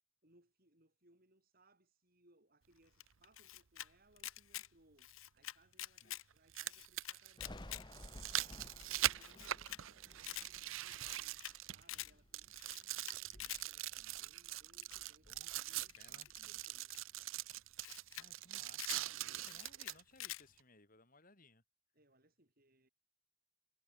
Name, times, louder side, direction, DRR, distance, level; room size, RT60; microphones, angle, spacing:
voice 1, 0.2-16.9 21.9-22.9, right 1 dB, 45° right, 5.5 m, -71 dB
Camera, 3.0-3.9 4.2-4.7 5.0-6.2 6.5-7.8 8.2-8.3 8.5-8.6 8.8-8.9 9.2-9.8 10.1-10.5 10.9-11.5 11.8-12.1 12.6-13.6 14.8-15.1 15.7-17.0 17.5-17.6 17.8-18.3 18.5-19.0 19.4-20.4, left 13 dB, 75° left, 1.4 m, -47 dB
sound 1, 3.1-3.2 5.1-5.2 6.3-12.0 12.3-20.0 20.6-20.7, right 14 dB, 70° right, 0.6 m, -42 dB
Thunder, 7.4-12.8 13.2-14.6 14.9-16.6, left 1 dB, 20° left, 1.6 m, -57 dB
voice 2, 16.0-16.3 18.2-21.6, left 3 dB, 40° left, 4.4 m, -64 dB
head